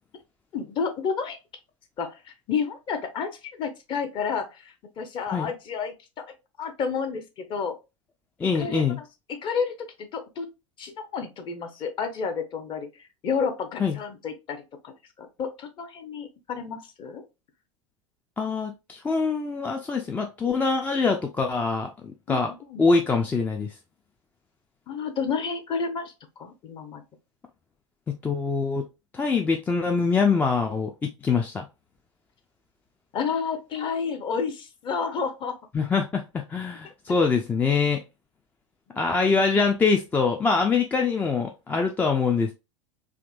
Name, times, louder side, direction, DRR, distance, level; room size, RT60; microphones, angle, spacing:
voice 1, 0.5-1.4 2.0-6.3 6.6-7.8 8.5-10.5 10.8-14.9 15.2-17.2 22.3-22.8 24.9-27.0 33.1-35.5 36.8-36.9, left 5 dB, 30° left, 0.7 m, -31 dB
voice 2, 8.4-9.0 13.8-14.0 18.4-22.5 22.8-23.7 28.1-28.8 29.1-31.7 35.7-38.0 39.0-42.5, left 4 dB, 10° left, 0.3 m, -24 dB
3.5 x 2.6 x 2.3 m
figure-of-eight pair, 85°, 16 cm